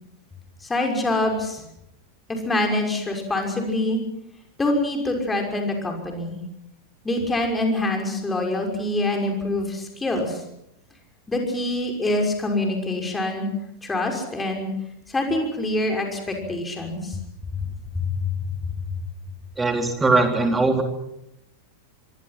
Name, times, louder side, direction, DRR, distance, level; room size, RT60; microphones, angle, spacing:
voice 1, 0.6-1.6 2.3-4.0 4.6-6.4 7.0-10.4 11.3-13.5 13.8-14.7 15.1-17.2 17.5-17.6 17.9-18.2, left 2 dB, 10° left, 2 dB, 6.0 m, -25 dB
voice 2, 19.6-20.8, right 3 dB, 10° right, 4 dB, 4.0 m, -20 dB
25.0 x 24.0 x 6.0 m, 0.82 s
figure-of-eight pair, 90°, 0 cm